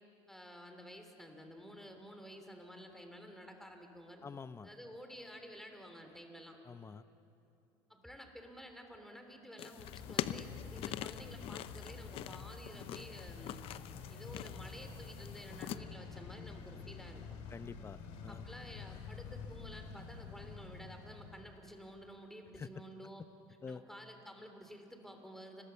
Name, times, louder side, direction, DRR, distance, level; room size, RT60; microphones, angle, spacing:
voice 1, 0.3-4.3 4.6-6.6 7.9-13.7 14.1-17.4 18.3-23.2 23.7-25.6, equal, 5° left, 5 dB, 3.5 m, -52 dB
voice 2, 4.2-4.7 6.7-7.0 17.5-18.5 22.6-22.7 23.6-23.8, left 5 dB, 25° left, 14 dB, 0.8 m, -47 dB
sound 1, 9.6-15.8, left 12 dB, 60° left, 0.8 m, -44 dB
sound 2, 9.8-21.7, left 5 dB, 75° left, 3.2 m, -49 dB
28.5 x 22.0 x 7.1 m, 3.0 s
supercardioid pair, 110°, 11 cm